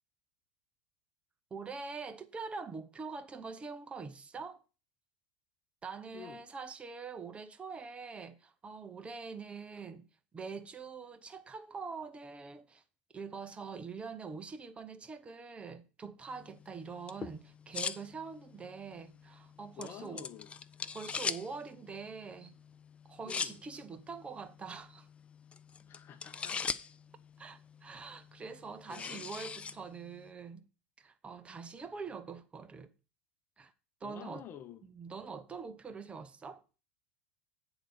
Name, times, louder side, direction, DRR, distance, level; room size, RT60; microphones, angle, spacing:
voice 1, 1.5-4.6 5.8-10.1 10.3-12.8 13.1-20.3 20.9-22.5 23.0-25.1 27.4-30.6 31.0-32.9 33.6-33.7 34.0-34.4 34.9-36.6, right 5 dB, 20° right, 0.7 m, -44 dB
voice 2, 6.1-6.4 19.8-20.5 23.2-23.6 25.9-26.6 28.8-29.3 34.0-34.8, left 10 dB, 35° left, 0.9 m, -49 dB
sound 1, 16.3-30.3, left 6 dB, 20° left, 0.5 m, -43 dB
9.1 x 3.9 x 6.7 m
supercardioid pair, 120°, 6 cm